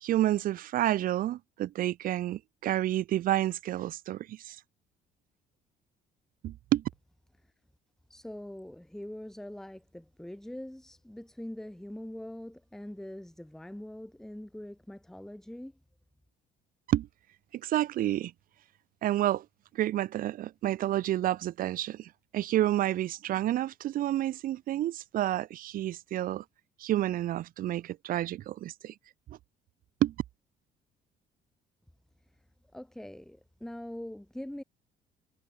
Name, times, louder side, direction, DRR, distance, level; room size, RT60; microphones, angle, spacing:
voice 1, 0.0-4.6 6.4-6.8 16.9-17.1 17.5-18.3 19.0-19.4 19.7-26.4 26.8-28.9 30.0-30.1, right 13 dB, 55° right, 0.6 m, -29 dB
voice 2, 8.1-15.7 32.3-32.4 32.7-34.6, left 1 dB, 5° left, 1.0 m, -43 dB
cardioid pair, 110°, 17 cm